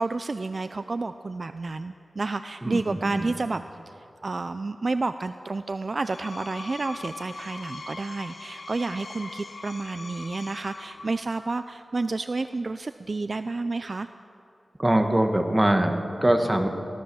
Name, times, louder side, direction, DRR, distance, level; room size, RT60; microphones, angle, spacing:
voice 1, 0.0-3.9 4.2-14.1, right 3 dB, 45° right, 10 dB, 0.4 m, -30 dB
voice 2, 2.6-3.3 14.8-16.7, right 1 dB, 15° right, 4 dB, 1.6 m, -23 dB
Screech, 5.9-11.4, left 3 dB, 60° left, 1.2 m, -41 dB
23.0 x 16.5 x 7.0 m, 2.9 s
wide cardioid pair, 110°, 0 cm